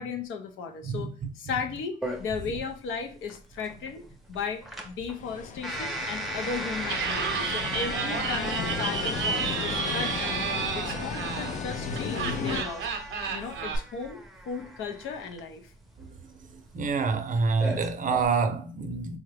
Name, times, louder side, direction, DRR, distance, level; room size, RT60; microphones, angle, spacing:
voice 1, 0.0-4.0 4.3-10.5 10.7-12.9 13.3-15.7, left 5 dB, 80° left, 0.6 m, -36 dB
sound 1, 2.0-18.3, right 1 dB, ahead, 0.7 m, -37 dB
sound 2, 5.2-12.6, left 5 dB, 40° left, 0.4 m, -35 dB
Laughter, 6.8-13.8, right 6 dB, 80° right, 0.6 m, -32 dB
voice 2, 16.7-19.2, right 4 dB, 40° right, 0.6 m, -27 dB
3.7 x 2.1 x 3.3 m
cardioid pair, 90°, 20 cm